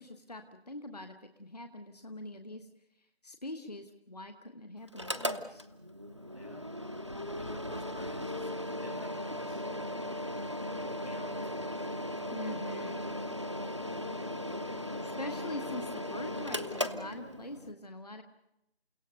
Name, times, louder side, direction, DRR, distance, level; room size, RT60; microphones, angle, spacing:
voice 1, 0.0-2.7 3.0-5.6 12.3-13.0 15.0-18.2, left 1 dB, 40° left, 7 dB, 1.2 m, -43 dB
Mechanical fan, 4.9-17.7, left 1 dB, 30° right, 0.8 m, -37 dB
voice 2, 6.3-6.7 7.4-9.7 10.8-11.8, left 1 dB, 80° left, 1 dB, 6.5 m, -52 dB
29.5 x 17.0 x 6.7 m, 0.85 s
figure-of-eight pair, 170°, 32 cm